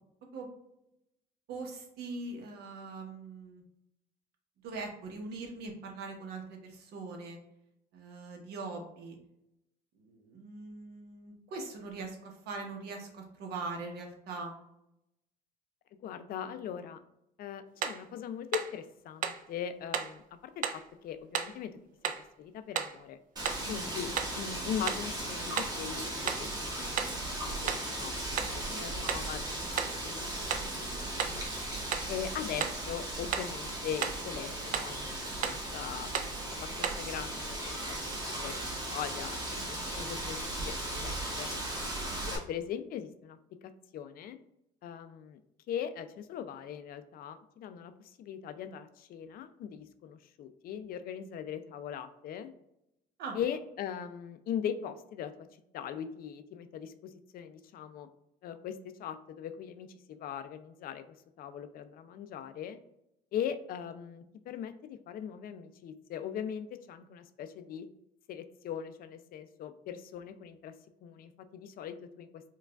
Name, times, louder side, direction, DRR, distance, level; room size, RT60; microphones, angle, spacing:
voice 1, 1.5-3.6 4.6-7.4 7.9-9.2 10.0-14.5 23.6-23.8 28.6-28.8 39.5-39.9 42.1-42.4 53.2-53.4, right 3 dB, 70° right, 2 dB, 0.9 m, -42 dB
voice 2, 16.0-17.0 17.4-21.8 22.4-23.2 23.7-26.9 27.6-29.7 30.0-30.6 31.0-31.5 32.1-35.1 35.4-36.1 36.5-39.4 39.7-41.5 42.3-44.4 44.8-45.4 45.7-52.5 53.3-55.5 55.7-58.1 58.4-62.8 63.3-67.9 68.3-70.7 71.0-72.4, left 9 dB, 60° left, 10 dB, 0.4 m, -40 dB
sound 1, 17.8-18.0 18.5-18.8 19.2-19.5 19.9-20.2 20.6-20.9 21.3-21.6 22.0-22.3 22.8-23.0 23.5-23.7 24.2-24.4 24.9-25.1 25.6-25.8 26.3-26.5 27.0-27.2 27.7-27.9 28.4-28.6 29.1-29.3 29.8-30.0 30.5-30.7 31.2-31.4 31.9-32.1 32.6-32.8 33.3-33.6 34.0-34.2 34.7-35.0 35.4-35.7 36.1-36.4 36.8-37.1, right 8 dB, 55° right, 0.4 m, -34 dB
Wind, 23.4-42.4, right 1 dB, 25° right, 1.0 m, -37 dB
4.6 x 2.3 x 2.3 m, 0.82 s
cardioid pair, 110°, 17 cm